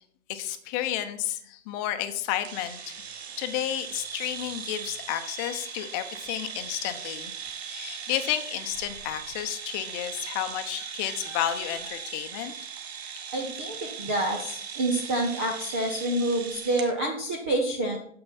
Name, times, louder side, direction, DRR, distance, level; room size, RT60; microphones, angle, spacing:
voice 1, 0.3-2.9 3.4-7.3 7.6-12.5, left 11 dB, 20° left, 9 dB, 0.8 m, -31 dB
sound 1, 2.4-16.9, right 7 dB, 50° right, 1.6 m, -39 dB
voice 2, 13.3-18.0, right 1 dB, 10° right, 1 dB, 0.4 m, -28 dB
9.3 x 7.7 x 4.2 m, 0.66 s
figure-of-eight pair, 125°, 40 cm